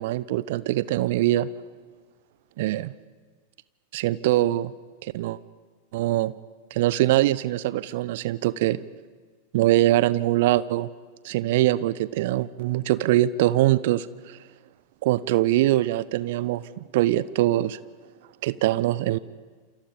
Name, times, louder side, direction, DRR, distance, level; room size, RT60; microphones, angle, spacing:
voice 1, 0.0-1.5 2.6-2.9 3.9-4.7 5.1-5.4 5.9-6.3 6.7-8.8 9.5-10.9 11.2-14.4 15.0-17.8 18.4-19.2, right 15 dB, 50° right, 18 dB, 0.8 m, -23 dB
28.5 x 27.5 x 5.3 m, 1.5 s
figure-of-eight pair, 90°, 0 cm